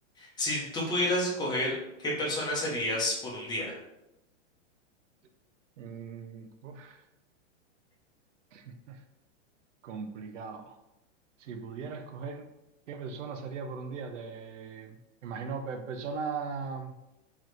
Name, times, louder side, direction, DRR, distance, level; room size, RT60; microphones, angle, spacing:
voice 1, 0.2-1.7 2.0-3.8, left 1 dB, 10° left, -4 dB, 0.9 m, -30 dB
voice 2, 5.8-7.0 8.5-9.0 9.8-10.8 11.4-12.5 12.9-16.9, right 5 dB, 90° right, 7 dB, 0.7 m, -39 dB
3.7 x 3.1 x 3.2 m, 0.91 s
supercardioid pair, 145°, 36 cm